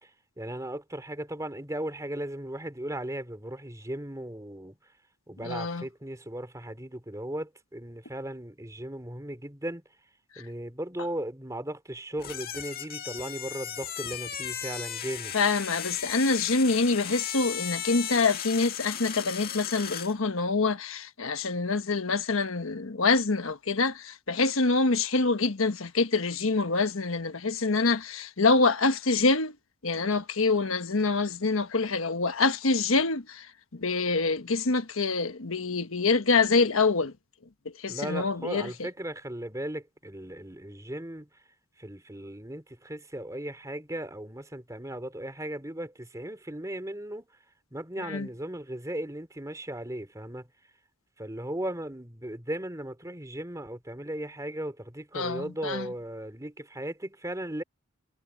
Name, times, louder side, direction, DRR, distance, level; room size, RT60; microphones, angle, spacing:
voice 1, 0.4-4.8 5.3-9.8 10.4-15.4 37.9-41.3 41.8-47.3 47.7-50.5 51.2-57.6, right 1 dB, 15° right, 3.0 m, -37 dB
voice 2, 5.4-5.8 15.3-29.5 29.8-37.1 37.8-38.9 48.0-48.3 55.1-55.9, left 3 dB, 85° left, 1.2 m, -26 dB
sound 1, 12.2-20.2, left 9 dB, 50° left, 2.1 m, -36 dB
head